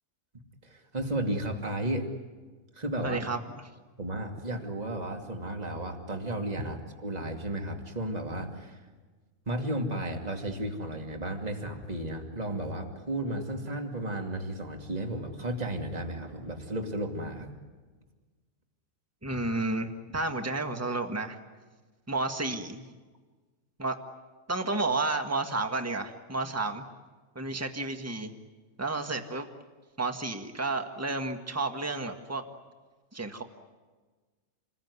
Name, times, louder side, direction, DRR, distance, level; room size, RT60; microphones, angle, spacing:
voice 1, 0.6-2.0 2.7-3.4 4.0-8.8 9.5-17.5, right 1 dB, 25° right, 3 dB, 2.6 m, -33 dB
voice 2, 3.0-3.4 19.2-21.4 22.1-22.8 23.8-24.0 24.5-26.8 27.3-28.3 28.8-29.5 30.0-32.4 33.1-33.4, right 2 dB, 10° right, 5 dB, 1.6 m, -31 dB
28.5 x 21.0 x 9.7 m, 1.3 s
omnidirectional pair, 1.7 m